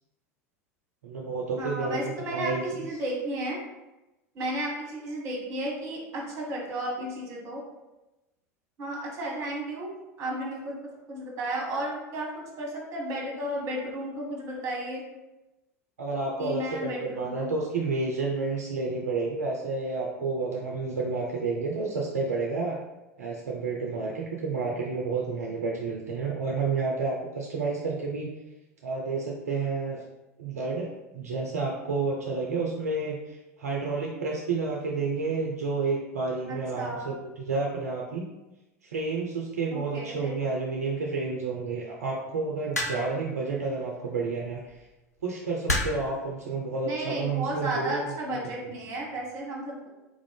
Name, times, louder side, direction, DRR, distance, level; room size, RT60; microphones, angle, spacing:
voice 1, 1.0-2.6 16.0-22.8 23.2-28.3 28.8-30.0 30.4-38.3 38.8-44.7 45.2-48.1, right 4 dB, 70° right, -2 dB, 0.5 m, -30 dB
voice 2, 1.6-3.6 4.3-7.6 8.8-9.9 10.2-10.8 11.1-15.0 16.4-17.5 36.5-37.1 39.7-40.3 46.8-49.9, right 1 dB, 40° right, -2 dB, 1.1 m, -33 dB
sound 1, 42.7-43.3 44.5-44.7 45.7-46.2 47.1-47.4, left 1 dB, 85° left, 0.5 m, -29 dB
3.6 x 2.5 x 3.3 m, 1.0 s
figure-of-eight pair, 80°, 8 cm